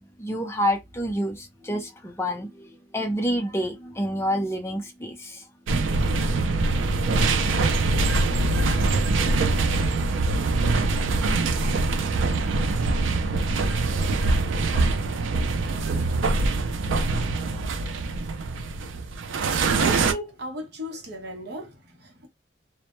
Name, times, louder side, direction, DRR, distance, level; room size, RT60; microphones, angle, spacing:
voice 1, 0.2-5.4, equal, 15° left, 0.5 m, -28 dB
sound 1, 5.7-20.1, right 3 dB, 85° right, 0.4 m, -23 dB
voice 2, 16.2-16.7 19.5-22.3, right 1 dB, 60° right, 0.8 m, -36 dB
2.1 x 2.1 x 2.9 m
head